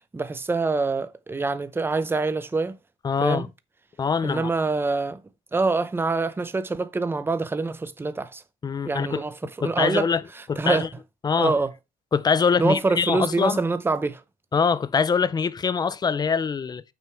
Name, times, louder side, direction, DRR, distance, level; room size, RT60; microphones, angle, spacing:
voice 1, 0.1-2.8 3.2-3.5 4.2-5.2 5.5-8.4 8.8-10.1 10.4-10.9 11.4-11.7 12.6-14.2, right 3 dB, 15° right, 0.7 m, -25 dB
voice 2, 3.0-3.5 4.0-4.5 8.6-9.2 9.6-10.2 10.5-10.9 11.2-11.5 12.1-13.6 14.5-16.8, left 6 dB, 25° left, 0.5 m, -23 dB
6.2 x 5.1 x 4.6 m
cardioid pair, 110°, 17 cm